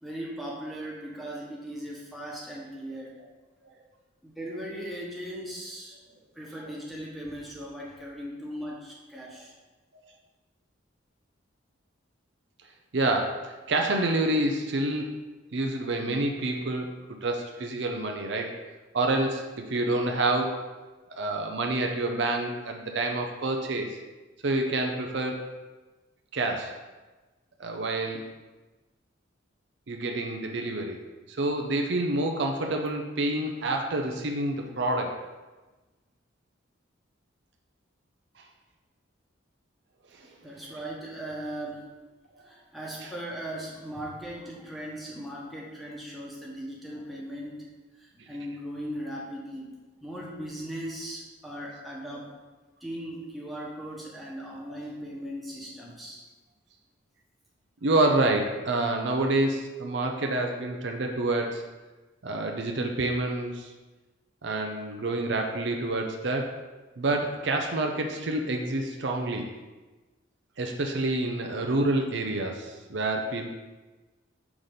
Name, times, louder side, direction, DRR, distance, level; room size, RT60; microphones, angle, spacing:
voice 1, 0.0-3.2 4.2-9.5 40.2-41.9 42.4-47.7 47.9-49.7 50.0-52.3 52.8-56.2, equal, ahead, -5 dB, 1.2 m, -38 dB
voice 2, 12.9-16.9 17.2-18.6 18.9-20.6 21.2-24.0 24.4-25.5 26.3-26.8 27.6-28.3 29.9-31.0 31.3-35.2 40.1-40.3 42.4-42.5 43.0-43.1 48.2-48.3 57.8-61.6 62.2-63.7 64.4-66.5 67.0-69.5 70.6-73.5, right 2 dB, 60° right, 3 dB, 0.6 m, -28 dB
5.9 x 4.0 x 5.0 m, 1.2 s
head